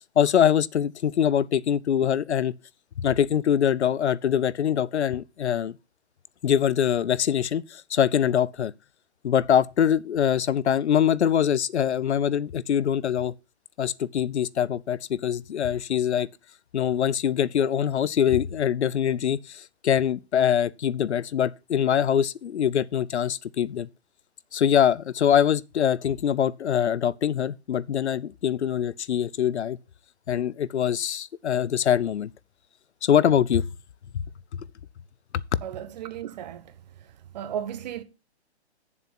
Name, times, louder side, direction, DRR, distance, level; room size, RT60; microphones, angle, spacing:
voice 1, 0.2-2.5 3.0-5.7 6.4-8.7 9.2-13.3 13.8-16.3 16.7-23.9 24.5-29.8 30.3-32.3 33.0-33.6, left 9 dB, 80° left, 0.7 m, -23 dB
voice 2, 35.6-36.8 37.3-38.0, right 9 dB, 40° right, 1.1 m, -34 dB
8.2 x 7.3 x 5.9 m
hypercardioid pair, 145°, 34 cm